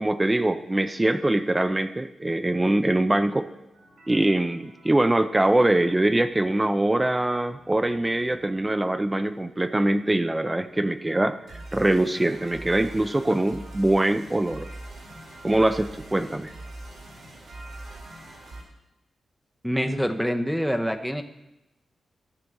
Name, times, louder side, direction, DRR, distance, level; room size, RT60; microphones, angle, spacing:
voice 1, 0.0-3.5 4.1-14.7 15.4-16.5, right 1 dB, 20° right, 9 dB, 0.5 m, -23 dB
sound 1, 3.7-18.6, right 1 dB, 85° right, 2.8 m, -45 dB
voice 2, 19.6-21.2, equal, ahead, 6 dB, 0.8 m, -25 dB
13.5 x 4.5 x 5.4 m, 0.96 s
cardioid pair, 70°, 0 cm